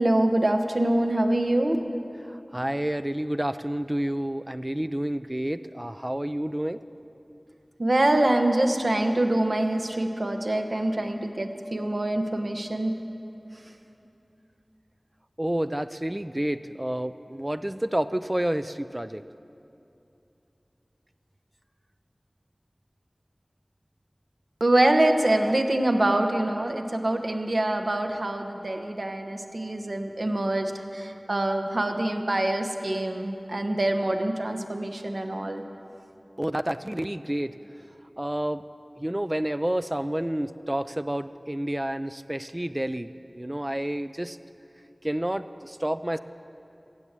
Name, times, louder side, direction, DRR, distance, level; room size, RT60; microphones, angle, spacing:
voice 1, 0.0-1.8 7.8-12.9 24.6-35.6, right 1 dB, 65° right, 5 dB, 1.0 m, -25 dB
voice 2, 2.3-6.8 15.4-19.2 36.4-37.5 38.2-38.6 39.0-44.4 45.0-46.2, right 1 dB, 20° right, 11 dB, 0.3 m, -29 dB
16.0 x 7.3 x 8.1 m, 2.8 s
wide cardioid pair, 45°, 0 cm